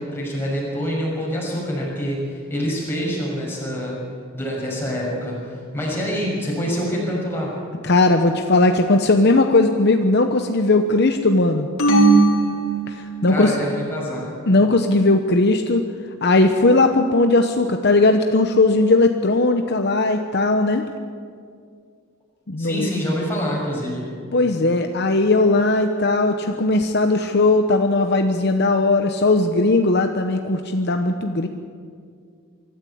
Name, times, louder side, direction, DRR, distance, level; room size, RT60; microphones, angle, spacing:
voice 1, 0.0-4.0 4.3-7.5 13.3-14.3 22.6-24.1, equal, 10° left, -4 dB, 6.5 m, -26 dB
voice 2, 7.8-11.7 12.9-13.5 14.5-15.9 16.2-20.8 22.5-22.9 24.3-31.5, left 2 dB, 50° left, 6 dB, 0.9 m, -18 dB
sound 1, 11.8-13.5, right 3 dB, 85° left, 3.3 m, -18 dB
24.0 x 14.0 x 8.6 m, 2.2 s
head